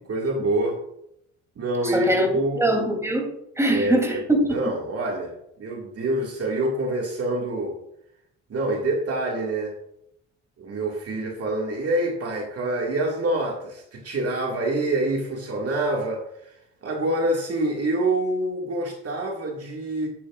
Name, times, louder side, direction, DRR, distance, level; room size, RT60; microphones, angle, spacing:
voice 1, 0.1-0.8 1.6-2.7 3.7-4.0 4.5-7.8 8.5-9.7 10.6-16.5 16.8-20.1, right 1 dB, 50° right, 0 dB, 2.1 m, -26 dB
voice 2, 1.8-2.3 2.6-4.7, right 1 dB, 10° right, 1 dB, 3.1 m, -23 dB
11.0 x 9.5 x 2.5 m, 0.76 s
cardioid pair, 90°, 30 cm